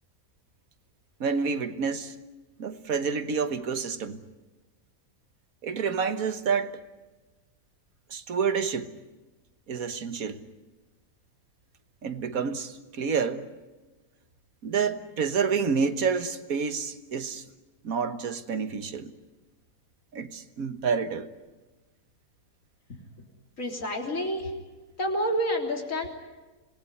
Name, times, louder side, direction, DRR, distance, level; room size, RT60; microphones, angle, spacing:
voice 1, 1.2-2.1 2.6-4.2 5.6-6.8 8.1-8.9 9.7-10.4 12.0-13.5 14.6-17.4 17.8-19.1 20.1-21.3, right 6 dB, 80° right, 1.7 m, -28 dB
voice 2, 23.6-24.5 25.0-26.1, equal, 65° left, 3.8 m, -28 dB
27.0 x 19.5 x 9.6 m
omnidirectional pair, 1.5 m